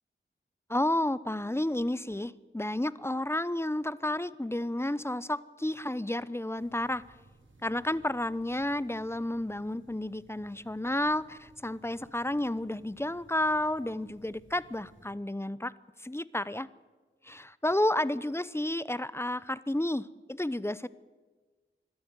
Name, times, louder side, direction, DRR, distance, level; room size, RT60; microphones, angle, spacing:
voice 1, 0.7-7.0 7.6-15.7 16.0-16.7 17.2-20.9, left 1 dB, 10° left, 18 dB, 0.7 m, -31 dB
sound 1, 6.6-15.1, right 2 dB, 65° right, 4.0 m, -60 dB
23.0 x 13.0 x 9.6 m, 1.3 s
wide cardioid pair, 45°, 21 cm